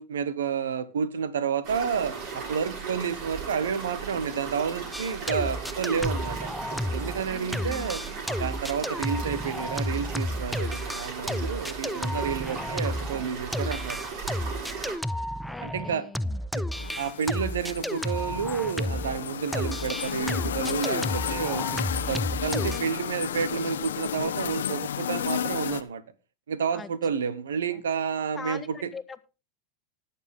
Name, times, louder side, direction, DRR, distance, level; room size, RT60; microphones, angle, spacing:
voice 1, 0.0-6.5 6.9-8.0 8.4-14.0 15.6-16.0 16.5-16.6 17.0-26.0 26.5-28.8, right 7 dB, 85° right, 1.2 m, -30 dB
sound 1, 1.6-15.0, right 5 dB, 55° right, 7.0 m, -37 dB
sound 2, 4.9-7.3 7.5-19.2 19.5-22.8, equal, ahead, 0.5 m, -32 dB
voice 2, 7.3-8.2 15.5-16.4 26.7-26.9 27.7-27.8 28.3-29.2, left 5 dB, 20° left, 1.4 m, -42 dB
sound 3, 16.7-25.8, left 9 dB, 85° left, 0.9 m, -32 dB
19.5 x 7.2 x 3.7 m
hypercardioid pair, 100°, 0 cm